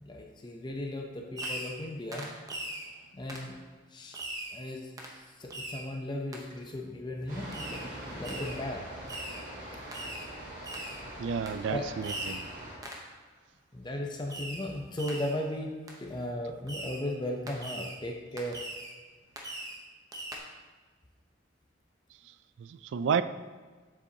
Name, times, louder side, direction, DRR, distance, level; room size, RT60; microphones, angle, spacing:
voice 1, 0.0-2.3 3.1-3.6 3.9-4.2 4.5-4.9 5.4-7.8 8.1-8.8 11.7-11.9 13.7-18.6, left 1 dB, 25° left, 1 dB, 0.6 m, -36 dB
Fireworks, 1.4-1.8 2.1-2.9 3.3-3.5 4.1-4.6 5.0-5.2 5.5-5.9 6.3-6.4 7.5-7.9 8.2-8.6 9.1-9.4 9.9-10.3 10.6-11.0 11.5-11.6 12.0-12.5 12.8-13.1 14.3-14.7 15.0-15.4 15.9-16.0 16.7-17.0 17.5-18.0 18.4-18.9 19.4-19.8 20.1-20.4, right 1 dB, 20° right, 0.8 m, -40 dB
sound 1, 7.3-12.7, right 1 dB, 45° right, 2.2 m, -43 dB
voice 2, 11.2-12.4 22.6-23.2, right 6 dB, 70° right, 13 dB, 0.3 m, -31 dB
7.3 x 7.1 x 2.8 m, 1.4 s
head